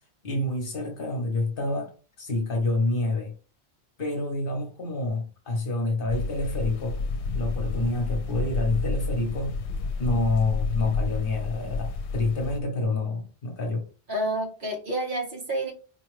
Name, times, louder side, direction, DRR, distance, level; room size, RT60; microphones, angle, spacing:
voice 1, 0.2-1.9 2.2-3.3 4.0-7.0 7.3-9.5 10.0-13.9, left 2 dB, 55° left, 1.1 m, -27 dB
sound 1, 6.1-12.6, left 4 dB, 85° left, 0.9 m, -30 dB
voice 2, 14.1-15.7, right 1 dB, 50° right, 1.3 m, -29 dB
4.4 x 2.3 x 3.1 m
omnidirectional pair, 1.1 m